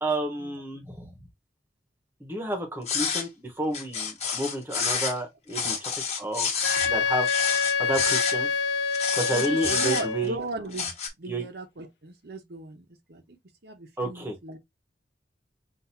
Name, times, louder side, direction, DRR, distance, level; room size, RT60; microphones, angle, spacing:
voice 1, 0.0-1.1 2.2-5.9 6.2-6.5 6.8-8.5 9.1-10.4 11.3-11.5 14.0-14.4, right 1 dB, 15° right, 1.0 m, -31 dB
sound 1, 2.9-3.3 3.7-5.2 5.5-6.9 7.2-8.3 8.9-10.3 10.7-11.1, left 6 dB, 35° left, 1.4 m, -28 dB
Wind instrument woodwind instrument, 6.6-10.4, left 6 dB, 70° left, 1.0 m, -26 dB
voice 2, 9.3-10.9 11.2-13.4 13.6-14.6, right 2 dB, 60° right, 0.8 m, -37 dB
5.8 x 2.6 x 2.7 m
head